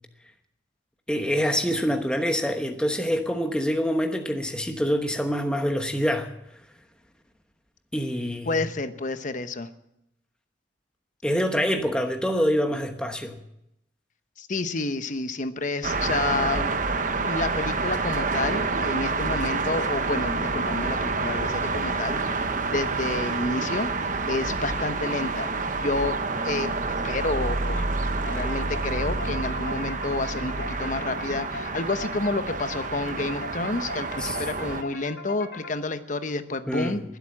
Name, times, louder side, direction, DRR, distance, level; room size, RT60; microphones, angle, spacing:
voice 1, 1.1-6.3 7.9-8.6 11.2-13.4 34.2-34.4 36.7-37.0, equal, 5° left, 4 dB, 1.1 m, -25 dB
voice 2, 8.5-9.7 14.4-16.7 17.2-23.9 24.3-26.2 26.4-26.7 27.0-27.9 28.2-37.0, left 3 dB, 45° left, 10 dB, 1.0 m, -29 dB
sound 1, 15.8-34.8, right 3 dB, 45° right, 1.1 m, -28 dB
sound 2, 28.2-36.1, left 2 dB, 80° left, 3.5 m, -40 dB
21.5 x 8.2 x 7.6 m, 0.83 s
head